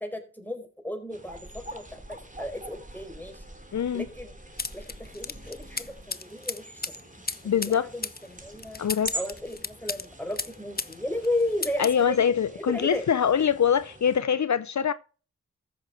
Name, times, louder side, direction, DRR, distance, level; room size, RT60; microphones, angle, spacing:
voice 1, 0.0-3.4 3.9-4.4 4.7-6.9 7.5-8.8 9.1-12.2 12.5-13.1, left 1 dB, 5° left, 4.6 m, -34 dB
sound 1, 1.1-14.2, right 1 dB, 25° right, 2.6 m, -44 dB
voice 2, 3.7-4.0 7.4-7.9 8.8-9.2 11.8-14.9, left 8 dB, 65° left, 0.6 m, -24 dB
sound 2, 4.6-11.0 11.2-12.0, left 4 dB, 30° left, 0.8 m, -35 dB
14.5 x 6.4 x 4.5 m
cardioid pair, 45°, 31 cm